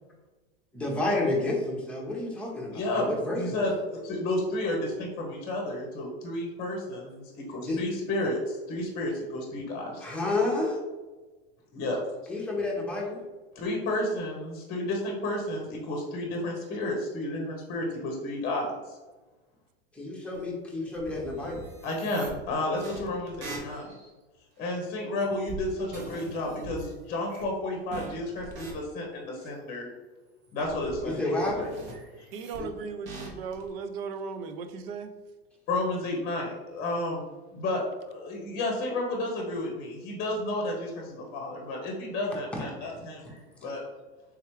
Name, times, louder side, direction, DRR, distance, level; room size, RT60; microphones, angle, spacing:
voice 1, 0.7-3.7 7.6-7.8 10.0-10.8 12.3-13.2 19.9-21.7 31.0-31.7 42.5-42.9 43.2-43.4, left 2 dB, 5° left, -3 dB, 0.8 m, -30 dB
voice 2, 2.7-10.1 11.7-12.0 13.5-19.0 21.8-23.9 24.6-29.9 30.5-31.7 32.2-32.3 35.7-37.2 37.5-43.3 43.6-43.8, left 1 dB, 30° left, 0 dB, 0.8 m, -31 dB
sound 1, 20.3-20.4 20.9-24.1 24.6-24.8 25.2-26.9 27.3-27.6 27.9-28.7 29.4-29.6 30.4-31.1 31.4-32.6 33.0-33.7, right 2 dB, 40° right, 1.0 m, -43 dB
voice 3, 32.3-35.1, right 5 dB, 70° right, 9 dB, 0.5 m, -37 dB
3.5 x 3.1 x 3.0 m, 1.2 s
supercardioid pair, 125°, 31 cm